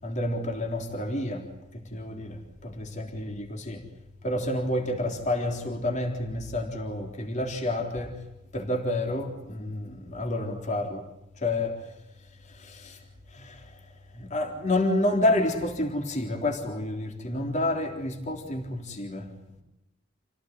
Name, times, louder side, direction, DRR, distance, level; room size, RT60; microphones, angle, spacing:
voice 1, 0.0-3.9 4.2-8.2 8.5-11.1 11.3-11.9 12.4-13.0 13.3-13.8 14.1-19.6, left 1 dB, 40° left, 3.8 m, -29 dB
29.0 x 18.0 x 9.6 m
head